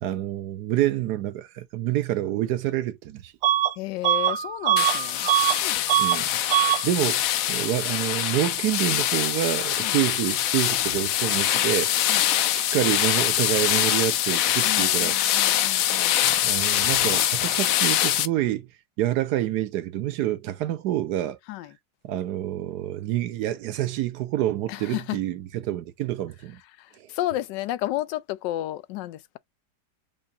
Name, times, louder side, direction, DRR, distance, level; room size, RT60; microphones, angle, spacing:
voice 1, 0.0-3.3 6.0-6.4 6.8-11.9 12.5-15.2 16.4-18.7 19.0-21.4 22.0-26.6, right 13 dB, 70° right, 1.2 m, -27 dB
Bus / Alarm, 3.4-3.7 4.0-5.6 5.9-6.2 6.5-6.8, right 12 dB, 90° right, 0.5 m, -22 dB
voice 2, 3.8-5.3 5.6-5.8 9.8-10.0 12.1-12.3 14.6-16.2 21.5-21.7 24.7-25.2 26.8-29.4, left 15 dB, 90° left, 1.2 m, -32 dB
sound 1, 4.8-18.3, left 12 dB, 70° left, 0.8 m, -24 dB
4.8 x 2.4 x 4.0 m
omnidirectional pair, 1.8 m